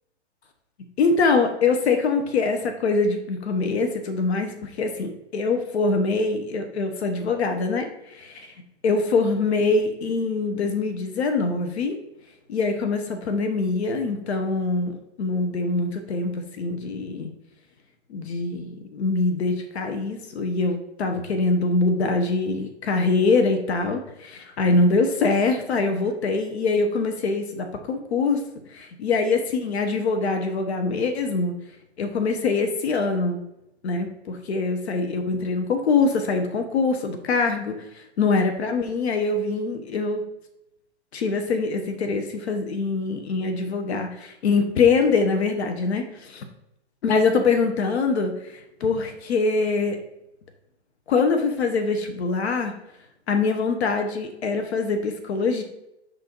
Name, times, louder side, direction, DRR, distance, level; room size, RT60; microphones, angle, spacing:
voice 1, 1.0-8.5 8.8-12.0 12.5-17.3 18.1-28.4 28.7-31.5 32.0-33.4 33.8-40.2 41.1-46.4 47.0-48.3 48.8-50.0 51.1-52.7 53.3-55.6, left 4 dB, 65° left, 6 dB, 1.1 m, -24 dB
6.6 x 4.0 x 4.5 m, 0.86 s
hypercardioid pair, 130°, 35 cm